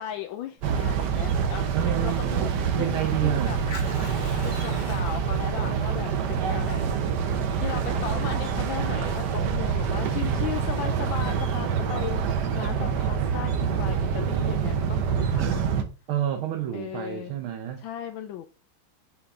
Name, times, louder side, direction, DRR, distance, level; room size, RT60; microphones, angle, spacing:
voice 1, 0.0-3.6 4.4-7.3 7.6-15.6 16.7-17.3 17.8-18.5, left 11 dB, 75° left, 1.3 m, -37 dB
Fire, 0.6-11.6, left 2 dB, 25° left, 1.4 m, -44 dB
sound 1, 0.6-15.8, right 7 dB, 65° right, 1.3 m, -26 dB
voice 2, 1.7-3.6 16.1-17.8, right 11 dB, 85° right, 1.6 m, -29 dB
6.7 x 4.1 x 3.6 m
omnidirectional pair, 2.2 m